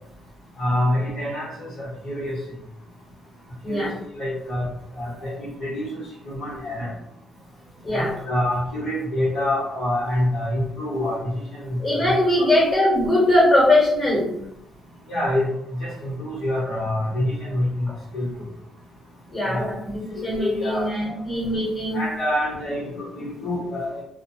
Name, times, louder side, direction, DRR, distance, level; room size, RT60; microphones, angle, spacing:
voice 1, 0.6-2.4 3.7-4.7 5.0-6.9 7.9-12.1 12.4-12.5 15.1-15.5 15.8-17.9 18.1-18.3 19.5-19.6 20.4-21.1 21.9-24.0, left 1 dB, 90° left, -8 dB, 1.1 m, -26 dB
voice 2, 11.8-14.4 19.3-22.0, left 1 dB, 40° left, -6 dB, 1.1 m, -21 dB
2.3 x 2.2 x 2.7 m, 0.79 s
cardioid pair, 90°, 0 cm